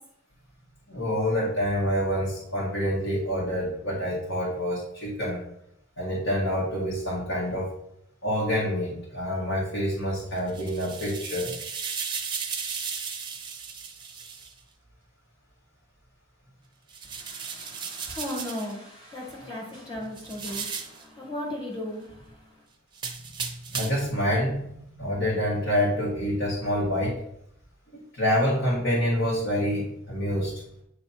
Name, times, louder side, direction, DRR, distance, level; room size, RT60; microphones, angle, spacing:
voice 1, 0.9-5.4 6.0-7.7 8.2-11.5 23.7-24.6 25.0-27.1 27.9-30.5, equal, 60° left, -7 dB, 1.9 m, -27 dB
sound 1, 10.4-14.5 16.9-18.7 20.2-21.0 22.9-24.1, right 6 dB, 20° right, 0.7 m, -35 dB
voice 2, 17.0-22.6, left 1 dB, 20° left, -4 dB, 1.9 m, -37 dB
8.8 x 3.2 x 4.3 m, 0.75 s
head